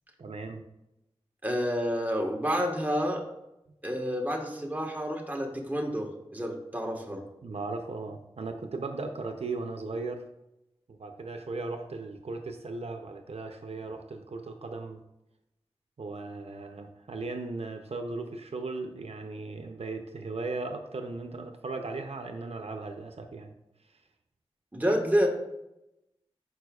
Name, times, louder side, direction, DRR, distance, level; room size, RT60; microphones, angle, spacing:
voice 1, 0.2-0.6 7.4-10.3 10.9-15.0 16.0-23.6 23.8-24.0, right 3 dB, 75° right, 5 dB, 0.5 m, -37 dB
voice 2, 1.4-3.2 3.8-7.2 24.7-25.3, equal, 15° right, 1 dB, 1.3 m, -29 dB
11.0 x 4.8 x 2.3 m, 0.89 s
wide cardioid pair, 60°, 11 cm